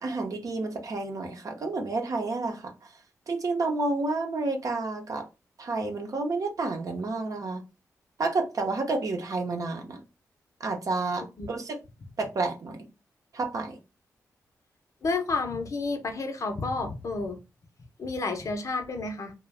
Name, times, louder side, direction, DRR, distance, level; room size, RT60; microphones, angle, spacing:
voice 1, 0.0-2.7 3.3-5.3 5.6-7.6 8.2-10.0 10.6-11.8 12.2-12.9 13.3-13.8, right 3 dB, 60° right, 0.7 m, -30 dB
voice 2, 15.0-17.4 18.0-19.3, left 3 dB, 55° left, 0.7 m, -30 dB
2.4 x 2.2 x 3.2 m
cardioid pair, 60°, 6 cm